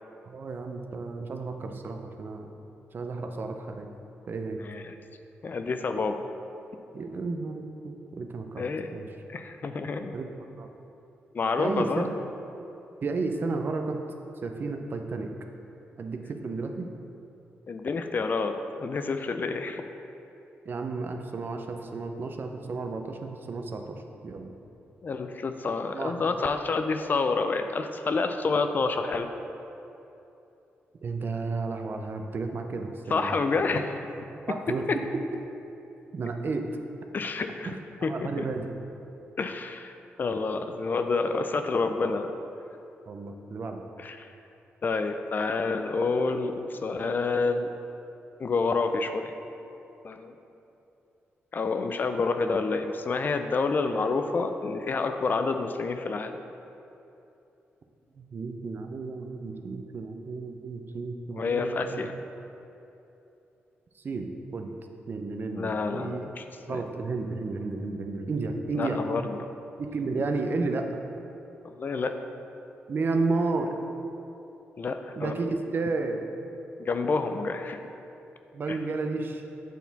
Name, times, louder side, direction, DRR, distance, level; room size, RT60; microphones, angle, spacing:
voice 1, 0.2-2.6 2.9-3.9 4.3-4.6 6.9-8.6 8.9-9.1 10.1-10.3 10.6-10.7 11.6-12.2 13.0-14.0 14.4-15.3 16.0-16.9 20.7-24.5 25.9-26.1 31.0-33.4 33.7-33.8 34.3-35.0 36.1-36.7 37.6-38.7 43.1-43.8 58.1-62.1 64.0-64.7 65.1-66.3 66.7-69.0 69.8-71.0 72.9-73.7 75.2-76.2 78.5-79.4, right 3 dB, 50° right, 4 dB, 0.6 m, -32 dB
voice 2, 4.6-4.9 5.4-6.2 8.6-8.9 9.3-10.1 11.3-12.1 17.7-18.5 18.8-19.8 25.0-29.3 33.1-34.1 37.1-37.7 38.0-38.5 39.4-42.3 44.0-44.3 44.8-47.7 48.4-49.3 50.0-50.4 51.5-56.4 61.3-62.1 65.5-66.8 68.7-69.4 71.6-72.2 74.8-75.3 76.8-77.9 78.7-78.8, left 4 dB, 45° left, 7 dB, 0.4 m, -28 dB
8.2 x 4.2 x 4.0 m, 2.9 s
cardioid pair, 85°, 4 cm